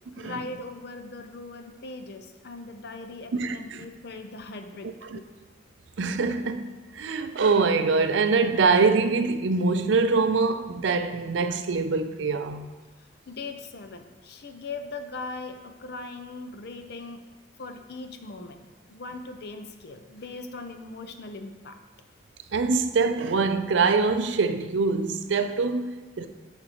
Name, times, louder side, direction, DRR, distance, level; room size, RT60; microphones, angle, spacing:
voice 1, 0.2-5.3 13.0-17.3 17.6-18.6 18.9-21.8, left 3 dB, 60° left, 0.6 m, -40 dB
voice 2, 3.3-3.8 5.1-5.2 6.0-12.7 22.5-26.3, right 4 dB, 75° right, 0.5 m, -24 dB
10.0 x 5.1 x 3.0 m
head